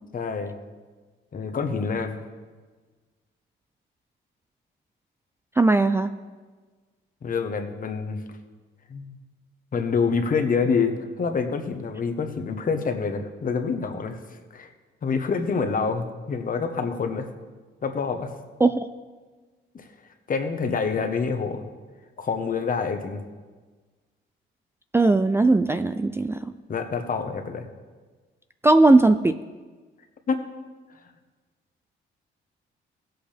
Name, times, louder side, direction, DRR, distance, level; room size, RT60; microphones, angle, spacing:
voice 1, 0.1-0.6 1.3-2.2 7.2-8.2 8.9-9.1 9.7-14.2 14.5-14.7 15.0-17.3 17.8-18.3 19.7-19.9 20.3-21.6 22.2-23.2 26.7-27.7 30.3-30.4, left 5 dB, 45° left, 7 dB, 1.1 m, -26 dB
voice 2, 5.6-6.1 18.6-18.9 24.9-26.5 28.6-29.4, right 2 dB, 10° right, 10 dB, 0.3 m, -18 dB
16.5 x 7.9 x 3.4 m, 1.4 s
cardioid pair, 90°, 20 cm